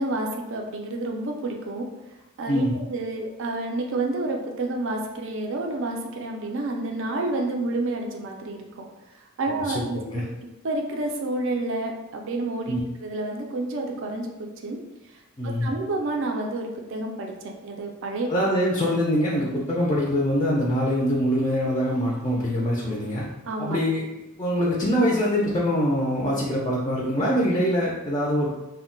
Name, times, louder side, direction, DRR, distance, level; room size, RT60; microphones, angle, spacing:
voice 1, 0.0-1.9 2.4-8.8 9.4-10.2 10.6-14.3 14.6-14.8 15.4-18.3 23.5-23.8, right 2 dB, 60° right, 2 dB, 0.4 m, -29 dB
voice 2, 9.5-10.2 12.7-12.8 15.4-15.7 18.3-23.3 23.6-24.0 24.4-28.5, equal, 20° left, -4 dB, 0.4 m, -24 dB
2.2 x 2.1 x 3.7 m, 1.0 s
head